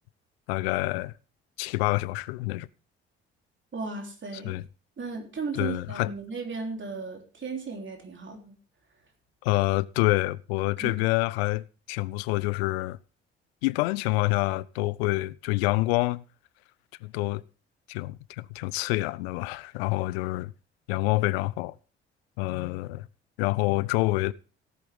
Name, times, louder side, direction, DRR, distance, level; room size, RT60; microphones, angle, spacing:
voice 1, 0.5-1.1 1.6-2.7 4.4-4.6 5.5-6.1 9.4-13.0 13.6-16.2 17.0-17.4 17.9-20.5 20.9-21.8 22.4-23.1 23.4-24.3, left 21 dB, 75° left, 0.5 m, -27 dB
voice 2, 3.7-4.6 5.0-8.5 10.8-11.0, right 4 dB, 35° right, 3.4 m, -35 dB
17.5 x 7.5 x 3.5 m
figure-of-eight pair, 45°, 32 cm